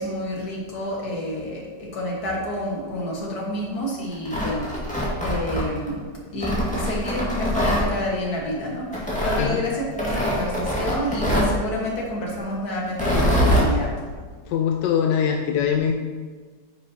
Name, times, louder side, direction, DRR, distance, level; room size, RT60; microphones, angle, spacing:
voice 1, 0.0-6.0 6.3-14.0, equal, 60° left, -3 dB, 2.1 m, -29 dB
Tearing, 4.1-5.9 6.4-7.9 8.9-9.4 10.0-11.6 12.9-13.7, equal, 5° left, 1.7 m, -23 dB
voice 2, 14.5-15.9, left 8 dB, 90° left, 3 dB, 1.3 m, -22 dB
9.5 x 6.1 x 2.9 m, 1.5 s
omnidirectional pair, 1.9 m